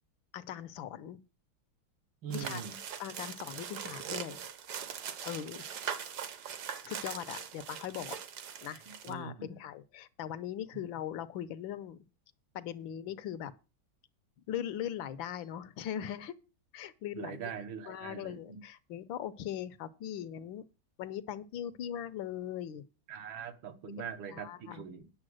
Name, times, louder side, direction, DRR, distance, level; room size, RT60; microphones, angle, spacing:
voice 1, 0.3-1.2 2.3-2.6 3.0-4.4 5.2-5.7 6.8-8.2 8.6-12.0 12.5-13.5 14.5-16.3 16.7-17.4 17.9-20.6 21.0-22.8 24.0-24.1 24.3-24.8, left 10 dB, 80° left, 1.5 m, -40 dB
voice 2, 2.2-2.8 8.9-9.6 10.7-10.8 17.2-18.6 23.1-25.1, right 7 dB, 75° right, 2.0 m, -42 dB
sound 1, 2.3-9.1, right 8 dB, 60° right, 1.4 m, -41 dB
9.7 x 6.9 x 6.3 m
omnidirectional pair, 2.2 m